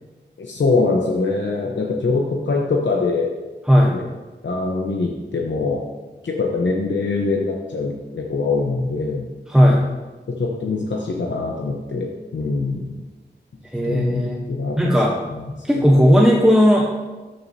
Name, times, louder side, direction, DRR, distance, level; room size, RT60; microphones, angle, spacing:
voice 1, 0.4-3.3 3.9-4.0 4.4-5.8 6.2-9.3 10.4-12.8 13.8-14.9 15.3-15.5, left 3 dB, 85° left, -1 dB, 0.9 m, -23 dB
voice 2, 9.5-9.9 13.7-14.4 14.8-15.1 15.7-16.9, equal, 5° right, -2 dB, 1.0 m, -15 dB
13.5 x 6.5 x 2.8 m, 1.2 s
wide cardioid pair, 75°, 18 cm